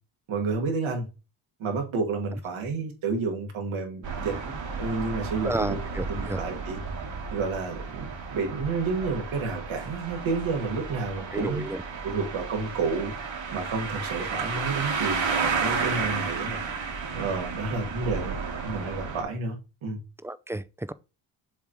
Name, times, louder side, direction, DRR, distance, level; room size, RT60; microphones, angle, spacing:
voice 1, 0.3-1.1 1.6-4.4 4.8-5.8 6.1-6.8 7.3-11.6 12.0-13.1 13.5-16.6 17.1-18.3 18.6-20.0, right 4 dB, 85° right, 1.9 m, -30 dB
sound 1, 4.0-19.2, right 5 dB, 70° right, 2.2 m, -32 dB
voice 2, 5.4-6.4 11.3-11.8 20.2-20.9, right 1 dB, 5° right, 0.3 m, -31 dB
7.2 x 3.1 x 5.0 m
cardioid pair, 70°, 47 cm